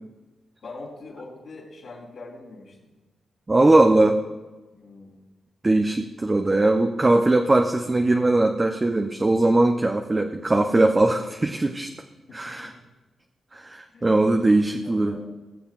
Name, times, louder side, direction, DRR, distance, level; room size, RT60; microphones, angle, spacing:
voice 1, 0.6-2.9 4.7-5.2 12.3-12.7 13.9-14.1 14.8-15.2, left 3 dB, 70° left, -6 dB, 3.3 m, -43 dB
voice 2, 3.5-4.2 5.6-11.9 12.3-12.7 13.5-15.2, right 2 dB, 30° right, 3 dB, 0.7 m, -20 dB
20.5 x 6.9 x 2.5 m, 1.1 s
supercardioid pair, 50°, 0 cm